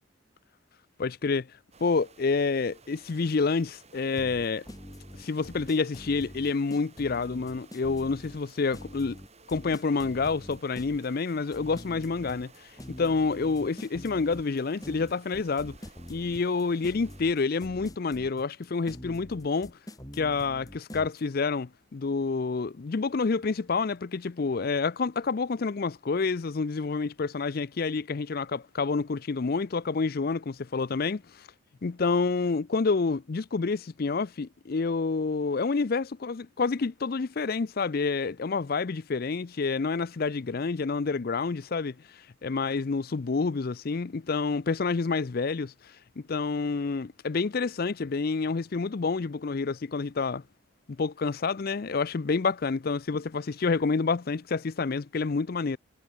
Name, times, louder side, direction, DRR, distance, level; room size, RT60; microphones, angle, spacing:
voice 1, 1.0-1.5 1.8-4.6 5.2-9.2 9.5-12.5 13.0-15.8 16.1-19.7 20.1-31.2 31.8-41.9 42.4-45.7 46.2-50.4 51.0-55.8, left 4 dB, 45° left, 0.5 m, -28 dB
sound 1, 1.7-17.2, right 3 dB, 30° right, 5.2 m, -56 dB
sound 2, 4.2-21.2, equal, 15° left, 3.2 m, -45 dB
head